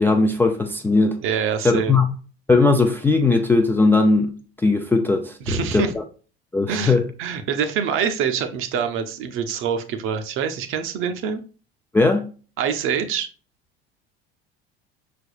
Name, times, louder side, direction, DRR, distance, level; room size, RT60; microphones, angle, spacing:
voice 1, 0.0-1.2 1.6-2.1 2.5-4.3 4.6-6.0 6.5-7.0 11.9-12.3, left 3 dB, 5° left, 0.3 m, -18 dB
voice 2, 1.2-2.0 5.5-5.9 6.7-11.4 12.6-13.3, right 7 dB, 40° right, 0.7 m, -25 dB
5.9 x 3.4 x 2.4 m
figure-of-eight pair, 65°, 31 cm